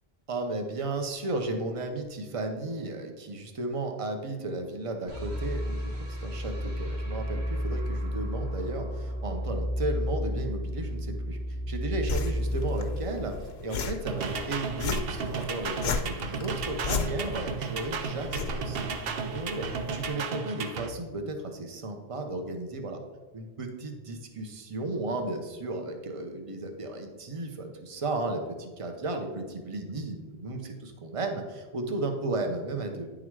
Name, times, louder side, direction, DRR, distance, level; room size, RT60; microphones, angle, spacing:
voice 1, 0.3-5.9 6.2-11.4 11.7-13.4 13.6-19.6 19.9-23.0 23.3-33.1, right 2 dB, 35° right, 4 dB, 0.9 m, -34 dB
sound 1, 5.1-14.2, equal, 85° right, 1.5 m, -32 dB
sound 2, 12.1-20.1, left 5 dB, 75° left, 0.9 m, -36 dB
sound 3, 14.1-20.9, right 5 dB, 65° right, 0.9 m, -34 dB
9.8 x 3.9 x 4.7 m, 1.3 s
omnidirectional pair, 1.1 m